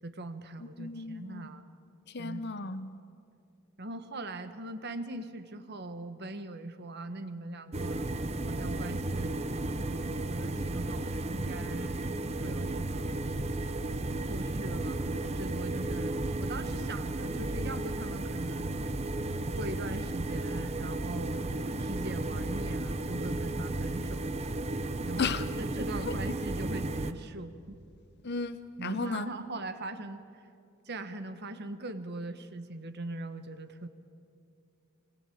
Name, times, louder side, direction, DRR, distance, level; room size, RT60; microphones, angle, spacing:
voice 1, 0.0-1.6 2.2-2.4 3.8-8.1 8.5-13.2 14.1-18.8 19.5-21.5 21.8-24.3 25.0-27.8 28.8-30.4 30.8-33.9, right 2 dB, 50° right, 1.3 m, -41 dB
voice 2, 0.6-1.5 2.1-2.9 25.2-25.5 26.1-26.2 28.2-29.3, left 4 dB, 50° left, 0.8 m, -34 dB
sound 1, 7.7-27.1, right 2 dB, 30° right, 0.8 m, -34 dB
23.5 x 20.5 x 8.7 m
head